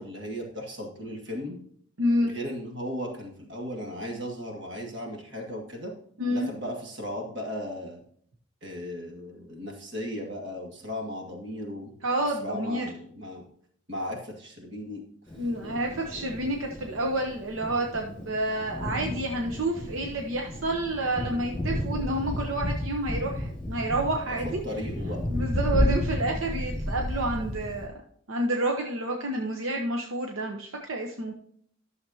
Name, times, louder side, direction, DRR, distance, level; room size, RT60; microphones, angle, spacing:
voice 1, 0.0-1.6 2.2-5.9 6.3-8.0 8.6-11.9 12.3-13.4 13.9-15.0 24.3-25.2, equal, 65° right, 1 dB, 2.0 m, -36 dB
voice 2, 2.0-2.3 6.2-6.5 12.0-12.9 15.4-24.6 25.3-27.9 28.3-31.3, right 1 dB, 85° right, 2 dB, 0.9 m, -29 dB
Thunder, 15.3-27.9, left 1 dB, 5° left, 1.5 m, -32 dB
12.0 x 6.8 x 2.8 m, 0.64 s
head